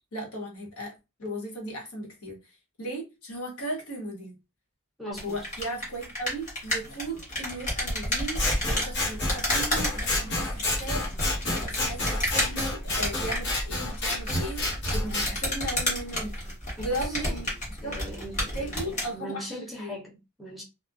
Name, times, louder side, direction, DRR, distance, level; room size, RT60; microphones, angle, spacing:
voice 1, 0.1-0.9 1.2-2.4 2.8-4.4 5.2-16.5 16.8-17.9 18.4-20.0, right 1 dB, 75° left, 1.0 m, -36 dB
voice 2, 5.0-5.4 17.2-17.4 17.8-20.6, equal, ahead, 0.6 m, -40 dB
sound 1, 5.1-19.1, left 1 dB, 35° left, 1.1 m, -32 dB
Scissors, 8.3-15.3, left 1 dB, 55° left, 0.9 m, -29 dB
2.6 x 2.2 x 2.3 m
head